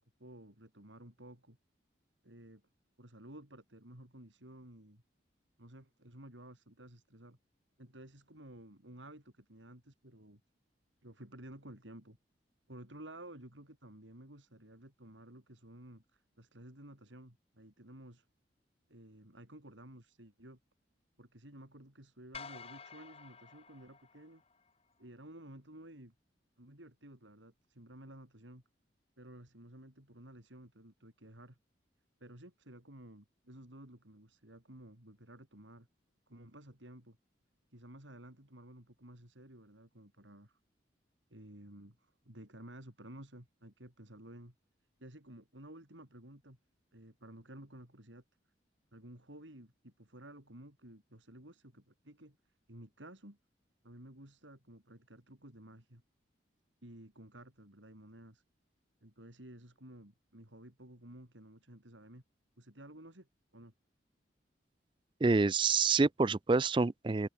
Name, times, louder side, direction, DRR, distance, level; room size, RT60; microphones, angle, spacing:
voice 1, 0.0-1.6 2.2-2.6 3.0-5.0 5.6-7.4 7.8-10.4 11.0-12.2 12.7-18.3 18.9-20.6 21.2-24.4 25.0-26.1 26.6-28.6 29.2-31.6 32.2-35.9 36.3-37.2 37.7-40.6 41.3-44.5 45.0-46.6 46.9-48.2 48.9-52.4 52.7-53.4 53.8-56.0 56.8-58.4 59.0-62.2 62.6-63.7, right 1 dB, 85° right, 5.6 m, -53 dB
sound 1, 22.3-24.7, left 5 dB, 30° left, 1.5 m, -51 dB
voice 2, 65.2-67.3, right 4 dB, 25° right, 0.4 m, -27 dB
open air
head